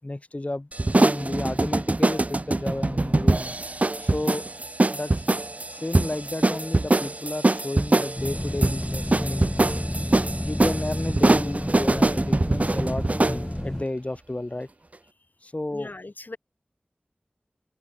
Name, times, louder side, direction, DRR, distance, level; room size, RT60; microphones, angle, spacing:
voice 1, 0.0-3.5 4.0-4.4 4.9-5.1 5.7-9.5 10.4-14.7 15.4-15.9, left 1 dB, 40° left, 5.8 m, -32 dB
sound 1, 0.7-13.4, right 2 dB, 45° right, 0.6 m, -23 dB
sound 2, 8.2-13.8, left 1 dB, 15° left, 1.3 m, -31 dB
voice 2, 15.7-16.4, left 2 dB, 65° left, 6.1 m, -39 dB
open air
wide cardioid pair, 40°, 3 cm